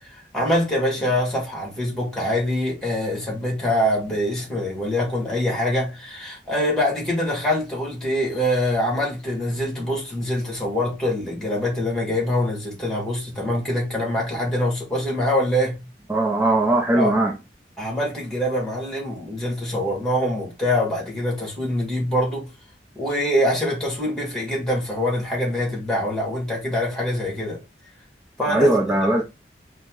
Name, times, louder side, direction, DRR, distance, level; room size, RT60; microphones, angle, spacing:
voice 1, 0.1-15.9 16.9-17.1 17.8-22.5 23.0-27.6 28.4-28.8, left 1 dB, 5° left, 2.0 m, -24 dB
voice 2, 16.1-17.3 28.5-29.2, right 1 dB, 15° right, 0.6 m, -19 dB
4.2 x 3.0 x 3.7 m
head